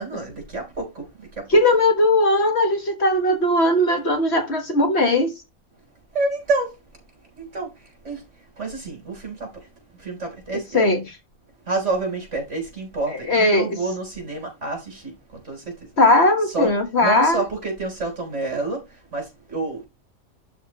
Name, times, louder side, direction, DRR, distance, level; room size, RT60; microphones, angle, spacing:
voice 1, 0.0-1.6 6.1-6.7 7.4-11.0 11.7-15.9 16.5-16.7 17.0-19.9, right 3 dB, 50° right, 4.3 m, -29 dB
voice 2, 1.5-5.3 10.7-11.0 13.1-13.7 16.0-17.4, left 1 dB, 45° left, 1.6 m, -18 dB
12.0 x 4.4 x 3.1 m
omnidirectional pair, 1.5 m